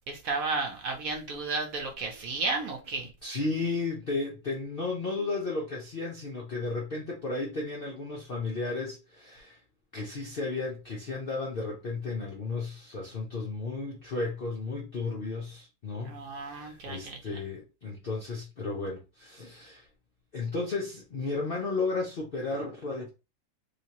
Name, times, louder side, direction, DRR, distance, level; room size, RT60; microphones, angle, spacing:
voice 1, 0.1-3.1 16.0-17.2, right 3 dB, 60° right, 1.0 m, -33 dB
voice 2, 3.2-9.6 9.9-19.9 20.3-23.1, left 3 dB, 60° left, 0.6 m, -34 dB
3.3 x 2.8 x 2.8 m
omnidirectional pair, 1.9 m